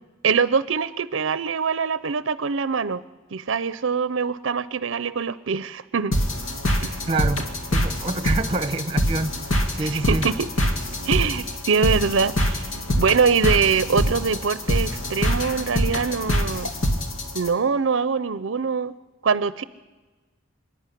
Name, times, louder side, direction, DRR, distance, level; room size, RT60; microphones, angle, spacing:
voice 1, 0.2-3.0 3.3-6.1 6.8-7.0 9.8-10.5 11.1-12.7 13.0-16.7 17.3-18.9 19.2-19.6, right 5 dB, 70° right, 17 dB, 0.6 m, -23 dB
sound 1, 6.1-17.5, equal, 80° left, 2.4 m, -25 dB
voice 2, 7.1-9.4 9.7-10.3, right 3 dB, 25° right, 13 dB, 1.0 m, -27 dB
26.0 x 11.0 x 9.9 m, 1.2 s
head